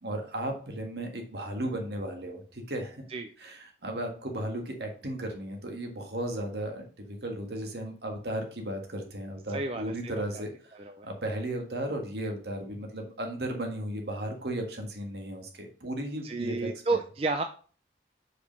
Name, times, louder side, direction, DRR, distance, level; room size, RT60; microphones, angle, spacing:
voice 1, 0.0-3.1 3.4-10.7 11.0-16.7, right 1 dB, 70° right, 3 dB, 1.6 m, -35 dB
voice 2, 9.5-10.4 10.7-11.1 16.2-17.4, right 3 dB, 35° right, 6 dB, 0.4 m, -32 dB
5.2 x 5.0 x 5.2 m, 0.41 s
head